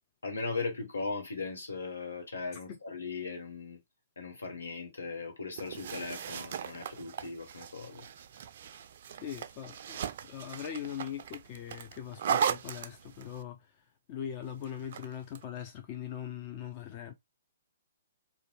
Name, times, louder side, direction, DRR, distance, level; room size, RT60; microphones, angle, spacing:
voice 1, 0.2-3.8 4.2-8.0, left 4 dB, 80° left, 1.0 m, -38 dB
sound 1, 5.6-13.4 14.6-15.4, right 8 dB, 55° right, 0.3 m, -37 dB
voice 2, 9.1-13.7 14.1-17.1, left 9 dB, 40° left, 0.4 m, -41 dB
2.5 x 2.2 x 3.1 m
figure-of-eight pair, 120°, 0 cm